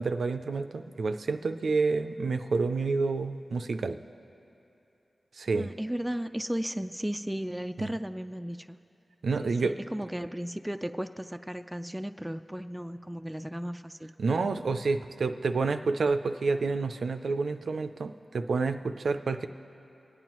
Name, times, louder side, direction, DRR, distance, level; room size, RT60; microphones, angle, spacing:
voice 1, 0.0-4.0 5.4-5.7 7.8-7.9 9.2-9.8 14.2-19.4, right 4 dB, 80° right, 8 dB, 0.4 m, -29 dB
voice 2, 5.5-8.8 9.4-14.1, equal, 10° right, 8 dB, 0.3 m, -35 dB
25.0 x 9.1 x 3.0 m, 2.9 s
cardioid pair, 55°, 0 cm